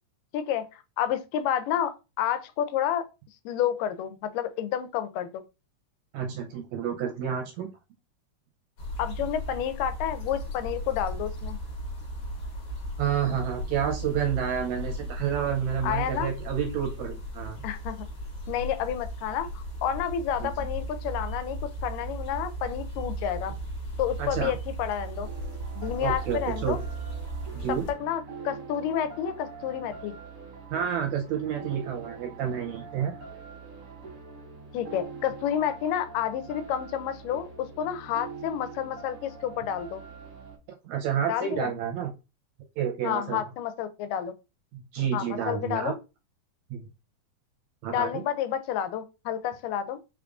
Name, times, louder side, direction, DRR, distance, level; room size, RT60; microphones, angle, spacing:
voice 1, 0.3-3.1 3.5-5.4 9.0-11.6 15.8-16.3 17.6-18.1 18.5-23.6 24.0-25.3 25.8-26.8 27.7-30.2 34.7-40.0 41.3-41.7 43.0-44.3 45.1-45.9 47.9-50.0, left 10 dB, 85° left, 2.2 m, -30 dB
voice 2, 6.1-7.7 13.0-17.6 20.4-20.5 24.2-24.5 26.0-26.8 27.5-27.8 30.7-33.1 40.8-42.1 42.8-43.4 44.7-45.9 46.7-46.9 47.8-48.2, right 8 dB, 75° right, 1.7 m, -29 dB
sound 1, 8.8-27.9, right 1 dB, 50° left, 1.5 m, -36 dB
sound 2, 25.2-40.6, right 4 dB, 55° right, 1.1 m, -44 dB
5.0 x 3.5 x 2.4 m
omnidirectional pair, 3.8 m